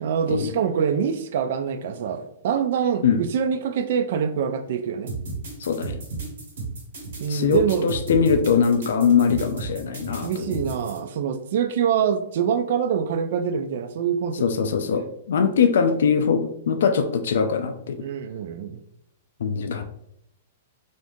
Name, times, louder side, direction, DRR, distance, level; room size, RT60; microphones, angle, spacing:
voice 1, 0.0-5.1 7.2-7.9 10.2-15.0 18.0-18.8, right 7 dB, 55° right, 10 dB, 0.3 m, -25 dB
sound 1, 5.1-11.0, right 3 dB, 75° right, 1.3 m, -34 dB
voice 2, 5.6-6.0 7.3-10.5 14.4-18.0 19.4-19.8, left 6 dB, 80° left, 7 dB, 0.3 m, -22 dB
3.5 x 2.5 x 2.6 m, 0.77 s
hypercardioid pair, 170°, 0 cm